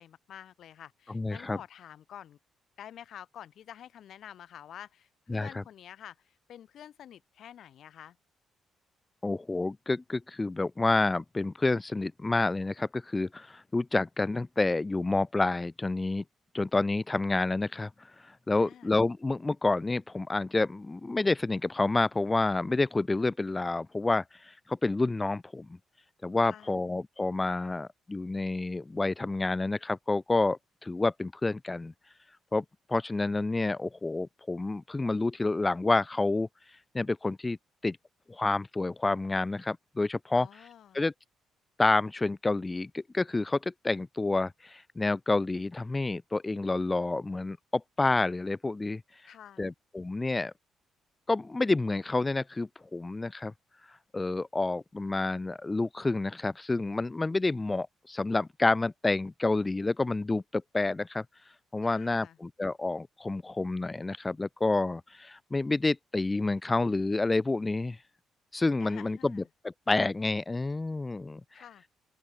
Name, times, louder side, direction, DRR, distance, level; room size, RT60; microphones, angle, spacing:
voice 1, 0.0-2.4 2.8-8.2 18.5-18.9 26.4-26.8 40.3-41.0 49.3-49.7 61.8-62.4 68.8-69.5 71.5-71.9, left 10 dB, 70° left, 4.4 m, -49 dB
voice 2, 1.1-1.6 5.3-5.6 9.2-16.2 16.5-17.9 18.5-25.7 26.2-31.9 32.5-36.5 36.9-37.6 37.8-38.0 38.3-40.5 40.9-41.1 41.8-49.0 49.6-50.5 51.3-53.5 54.1-61.2 61.7-68.0 68.5-71.4, left 2 dB, 20° left, 0.4 m, -29 dB
open air
cardioid pair, 90°, 0 cm